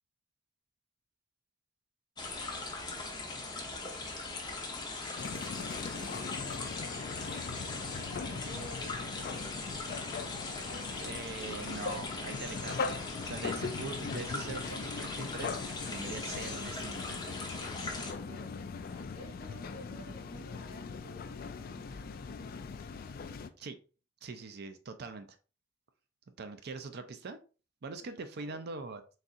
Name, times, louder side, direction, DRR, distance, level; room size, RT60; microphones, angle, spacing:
sound 1, 2.2-18.1, left 3 dB, 20° left, 0.8 m, -40 dB
voice 1, 3.6-4.3 5.7-7.1 7.4-9.6 10.2-10.6 18.2-18.6 18.9-22.1 28.0-28.6, right 1 dB, 20° right, -7 dB, 1.8 m, -54 dB
sound 2, 5.2-23.5, left 4 dB, 50° left, 0.3 m, -40 dB
voice 2, 11.0-13.0 13.2-17.2 23.6-23.8 24.2-25.3 26.4-27.4 27.8-29.0, right 4 dB, 55° right, 9 dB, 0.5 m, -42 dB
4.1 x 3.6 x 2.5 m, 0.35 s
head